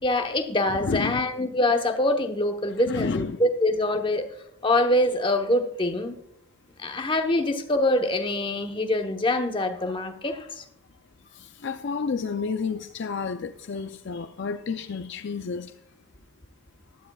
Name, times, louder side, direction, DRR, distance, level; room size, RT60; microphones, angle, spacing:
voice 1, 0.0-4.3 4.6-6.1 6.8-10.6, left 1 dB, 20° left, 0.9 m, -24 dB
voice 2, 0.7-1.2 2.9-3.4 11.3-15.7, left 5 dB, 55° left, 0.4 m, -30 dB
15.5 x 12.5 x 2.3 m
head